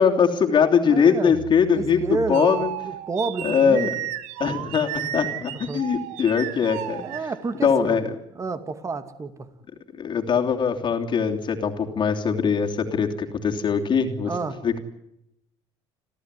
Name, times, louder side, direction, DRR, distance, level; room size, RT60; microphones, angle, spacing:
voice 1, 0.0-2.7 3.4-3.9 4.4-7.0 7.6-8.1 10.0-14.3 14.6-14.8, left 6 dB, 40° left, 3 dB, 3.1 m, -21 dB
voice 2, 0.8-1.3 1.7-3.9 5.7-5.8 7.0-8.0 8.4-9.5 14.3-14.6, right 3 dB, 25° right, 10 dB, 2.4 m, -30 dB
sound 1, 1.3-7.7, right 12 dB, 80° right, 1.5 m, -34 dB
28.0 x 15.0 x 9.9 m, 0.82 s
cardioid pair, 115°, 13 cm